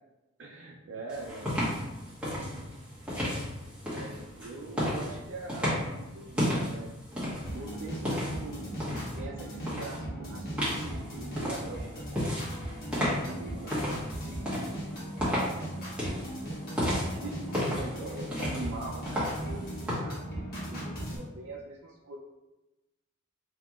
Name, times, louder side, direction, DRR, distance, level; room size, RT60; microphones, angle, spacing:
voice 1, 0.4-2.0 2.4-2.7 3.8-6.9 7.5-8.7 9.1-12.1 13.0-16.8 17.2-22.2, right 2 dB, 65° right, -3 dB, 0.5 m, -43 dB
sound 1, 1.1-9.2 9.7-10.0 10.6-19.9, equal, 5° right, 1.2 m, -34 dB
sound 2, 7.5-21.2, right 1 dB, 50° left, 1.2 m, -38 dB
5.5 x 2.9 x 2.4 m, 1.0 s
head